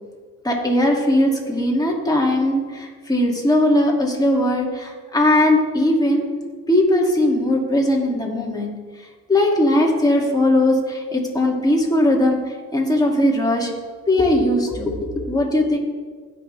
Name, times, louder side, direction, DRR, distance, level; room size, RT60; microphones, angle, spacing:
voice 1, 0.4-6.2 6.7-8.7 9.3-12.4 12.7-13.7 14.1-15.8, left 1 dB, 10° left, -1 dB, 2.4 m, -19 dB
16.0 x 6.0 x 3.4 m, 1.5 s
supercardioid pair, 75°, 37 cm